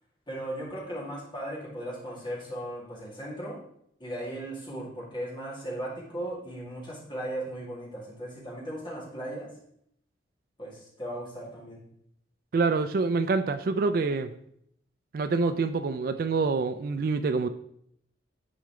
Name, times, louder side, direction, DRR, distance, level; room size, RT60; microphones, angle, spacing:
voice 1, 0.3-3.6 4.0-9.5 10.6-11.8, right 1 dB, 25° left, -6 dB, 2.4 m, -37 dB
voice 2, 12.5-14.3 15.1-17.5, right 4 dB, 50° right, 11 dB, 0.3 m, -26 dB
10.0 x 4.7 x 3.1 m, 0.70 s
head